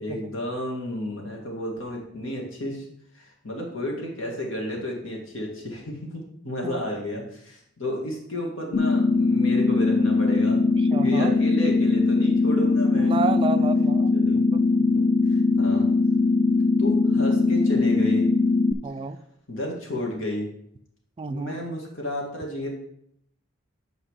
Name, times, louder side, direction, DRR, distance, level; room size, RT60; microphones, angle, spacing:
voice 1, 0.0-2.8 3.1-10.6 10.9-13.1 14.1-14.4 14.9-15.0 15.3-15.8 16.8-18.3 19.5-20.5 21.3-22.7, left 1 dB, 85° left, 0 dB, 2.0 m, -32 dB
sound 1, 8.7-18.7, left 3 dB, 50° left, 0.5 m, -21 dB
voice 2, 10.8-11.3 12.9-14.7 18.8-19.2 21.2-21.6, right 4 dB, 25° right, 11 dB, 0.3 m, -31 dB
7.6 x 5.4 x 4.8 m, 0.72 s
head